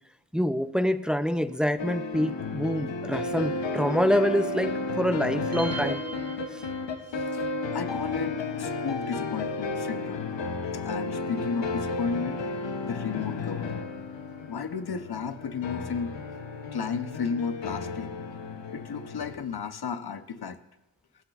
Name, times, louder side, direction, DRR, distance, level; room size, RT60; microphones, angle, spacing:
voice 1, 0.3-6.0, equal, ahead, 11 dB, 0.4 m, -26 dB
sound 1, 1.8-19.4, left 3 dB, 90° left, 0.9 m, -33 dB
sound 2, 5.5-7.3, right 4 dB, 35° right, 0.8 m, -38 dB
voice 2, 7.7-10.3 10.8-12.4 12.8-13.8 14.5-16.1 16.7-18.1 18.7-20.6, left 5 dB, 60° left, 10 dB, 0.8 m, -33 dB
22.0 x 7.7 x 2.4 m, 0.94 s
wide cardioid pair, 60°, 43 cm